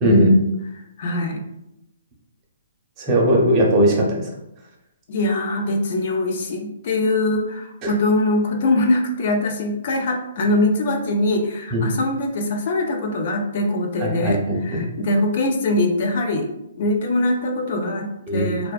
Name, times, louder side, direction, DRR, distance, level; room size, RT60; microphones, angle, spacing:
voice 1, 0.0-0.3 3.0-4.3 7.8-7.9 11.7-11.9 14.0-14.9 18.3-18.5, equal, 25° right, -1 dB, 0.5 m, -18 dB
voice 2, 1.0-1.4 5.1-16.5 16.8-18.1 18.3-18.7, left 2 dB, 50° left, 3 dB, 0.3 m, -22 dB
2.5 x 2.2 x 2.2 m, 0.86 s
hypercardioid pair, 160°, 0 cm